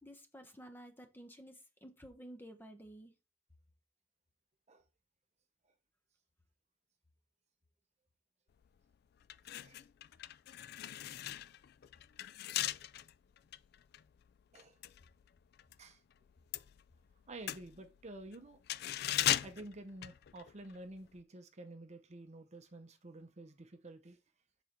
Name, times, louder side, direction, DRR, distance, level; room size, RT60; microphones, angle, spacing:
voice 1, 0.0-3.1, equal, 10° left, 1.0 m, -53 dB
sound 1, 8.6-8.8 9.2-15.8 16.1-20.8 21.0-21.2, left 13 dB, 60° left, 0.3 m, -39 dB
voice 2, 17.3-18.6 19.4-24.2, right 2 dB, 35° right, 0.7 m, -50 dB
7.1 x 4.1 x 4.3 m
head